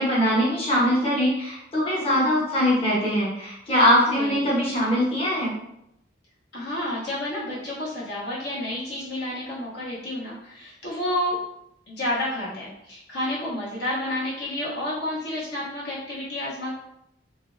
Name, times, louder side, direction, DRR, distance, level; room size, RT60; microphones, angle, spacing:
voice 1, 0.0-5.5, equal, 30° left, -7 dB, 0.9 m, -22 dB
voice 2, 3.8-4.4 6.5-11.3 11.9-16.7, left 1 dB, 60° left, -7 dB, 0.8 m, -30 dB
2.9 x 2.5 x 2.5 m, 0.80 s
head